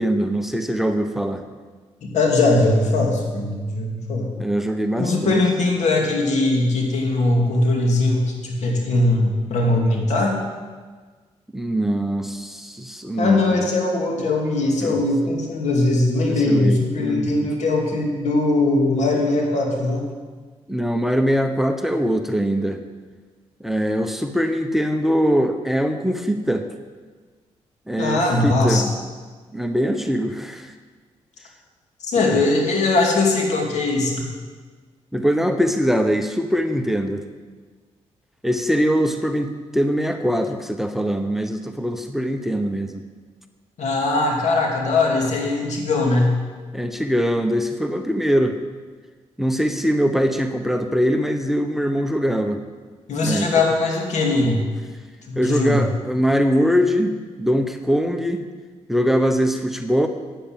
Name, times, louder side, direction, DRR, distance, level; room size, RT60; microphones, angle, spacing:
voice 1, 0.0-1.4 4.4-5.4 11.5-13.4 14.8-14.9 16.3-17.5 20.7-22.8 23.6-26.7 27.9-28.9 29.5-30.7 32.2-32.4 35.1-37.2 38.4-43.0 46.7-48.6 49.4-52.6 53.2-53.5 55.4-58.5 58.9-60.1, equal, ahead, 7 dB, 0.9 m, -22 dB
voice 2, 2.0-4.3 5.0-10.4 13.2-20.0 28.0-28.9 32.0-34.3 43.8-46.4 53.1-54.6 55.3-55.9, left 2 dB, 70° left, 0 dB, 2.5 m, -20 dB
8.9 x 8.0 x 8.8 m, 1.5 s
cardioid pair, 65°, 12 cm